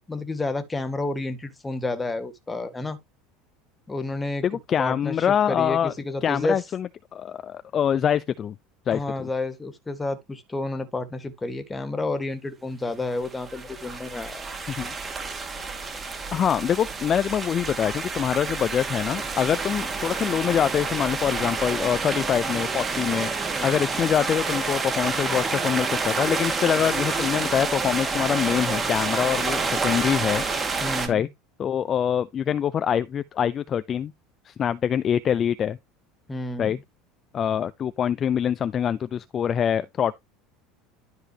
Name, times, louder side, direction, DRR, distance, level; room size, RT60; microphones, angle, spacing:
voice 1, 0.0-3.0 3.9-4.5 4.8-6.6 8.9-14.4 30.8-31.3 36.3-36.8, left 2 dB, 15° left, 2.0 m, -30 dB
voice 2, 4.4-5.9 6.2-8.5 8.9-9.3 14.8-14.9 16.3-23.3 23.6-30.4 31.1-31.3 31.6-34.1 34.5-35.8 36.6-36.8 37.3-40.2, left 9 dB, 35° left, 0.6 m, -24 dB
sound 1, 13.1-31.1, right 4 dB, 20° right, 2.3 m, -28 dB
12.5 x 4.8 x 3.0 m
supercardioid pair, 115°, 0 cm